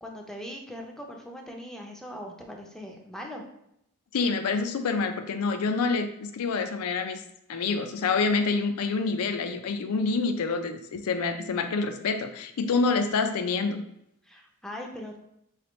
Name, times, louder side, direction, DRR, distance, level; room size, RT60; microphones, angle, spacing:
voice 1, 0.0-3.4 14.2-15.2, equal, ahead, 1 dB, 0.5 m, -40 dB
voice 2, 4.1-7.2 7.5-13.8, left 4 dB, 75° left, 8 dB, 0.4 m, -27 dB
3.9 x 3.2 x 3.0 m, 0.76 s
head